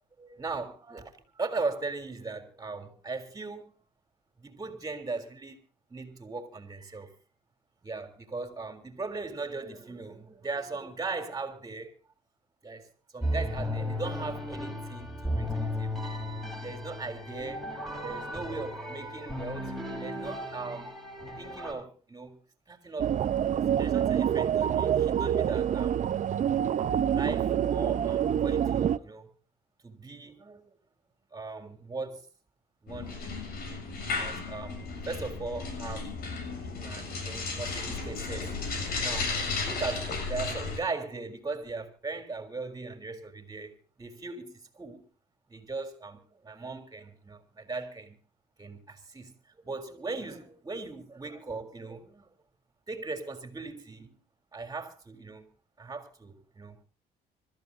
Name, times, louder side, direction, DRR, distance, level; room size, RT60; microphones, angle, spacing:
voice 1, 0.2-3.7 4.4-5.6 5.9-7.1 7.8-11.9 12.6-16.2 16.6-17.7 18.0-20.9 21.4-22.4 22.7-23.2 23.8-26.1 27.1-29.3 29.8-30.8 31.3-32.2 32.8-33.5 34.1-36.1 36.6-39.3 39.6-45.1 45.5-48.2 48.6-52.3 52.9-54.2 54.5-55.5 55.8-56.8, right 3 dB, 20° right, 3.7 m, -39 dB
sound 1, 13.2-21.7, left 1 dB, ahead, 5.7 m, -35 dB
sound 2, 23.0-29.0, right 9 dB, 45° right, 0.9 m, -26 dB
sound 3, 32.9-40.8, left 4 dB, 65° left, 7.3 m, -34 dB
25.5 x 14.0 x 2.8 m
cardioid pair, 110°, 17 cm